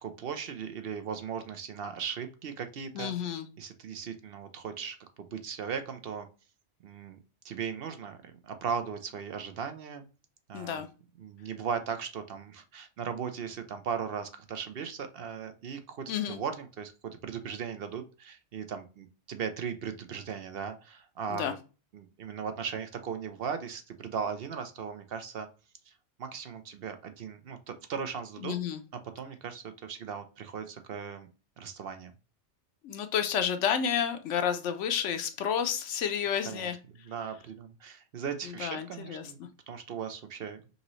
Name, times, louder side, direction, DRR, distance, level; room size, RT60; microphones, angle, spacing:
voice 1, 0.0-6.3 6.8-7.2 7.4-10.1 10.5-10.8 11.2-21.6 21.9-25.5 25.9-26.0 26.2-28.5 29.1-31.3 31.6-32.1 36.4-36.7 37.0-39.4 39.7-40.6, right 6 dB, 60° right, 9 dB, 0.8 m, -38 dB
voice 2, 2.9-3.5 10.5-10.9 16.1-16.4 21.3-21.5 28.4-28.8 32.8-36.8 38.5-39.5, left 8 dB, 85° left, 8 dB, 1.0 m, -31 dB
5.4 x 2.9 x 3.0 m, 0.33 s
omnidirectional pair, 1.2 m